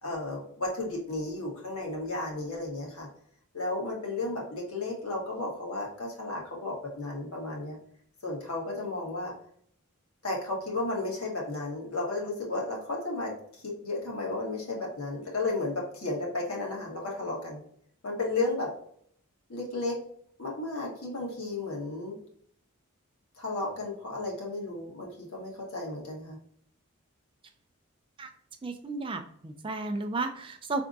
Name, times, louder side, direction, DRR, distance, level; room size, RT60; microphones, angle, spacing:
voice 1, 0.0-3.1 3.5-7.8 8.2-9.3 10.2-17.6 18.0-18.7 19.5-20.0 20.4-22.2 23.4-26.4, left 2 dB, 70° left, -3 dB, 1.6 m, -33 dB
voice 2, 28.6-30.8, right 3 dB, 25° right, 6 dB, 0.4 m, -33 dB
5.0 x 3.4 x 2.6 m, 0.64 s
head